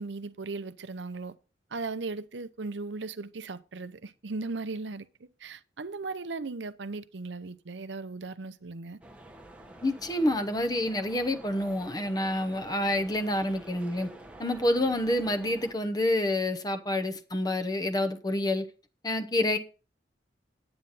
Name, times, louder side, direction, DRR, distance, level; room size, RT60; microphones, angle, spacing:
voice 1, 0.0-1.3 1.7-9.0, right 3 dB, 75° right, 0.7 m, -37 dB
sound 1, 9.0-15.7, right 1 dB, 5° right, 1.1 m, -49 dB
voice 2, 9.8-14.1 14.4-18.7 19.0-19.6, left 1 dB, 20° left, 0.8 m, -28 dB
9.9 x 8.8 x 4.1 m
head